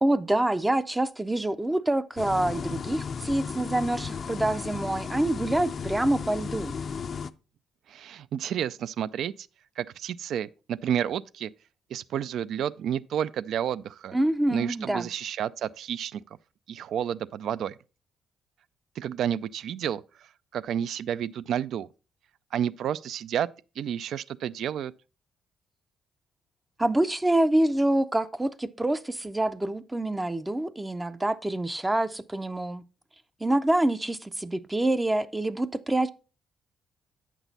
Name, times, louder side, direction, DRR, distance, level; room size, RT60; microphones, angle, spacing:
voice 1, 0.0-6.7 14.1-15.1 26.8-32.8 33.4-36.1, right 1 dB, 15° right, 0.5 m, -26 dB
sound 1, 2.2-7.3, left 6 dB, 45° left, 0.4 m, -34 dB
voice 2, 7.9-9.3 9.8-11.5 11.9-14.2 14.5-16.2 16.7-17.8 19.0-20.0 20.5-21.9 22.5-23.5 23.8-24.9, right 9 dB, 70° right, 0.3 m, -30 dB
8.0 x 6.1 x 4.0 m
cardioid pair, 90°, 0 cm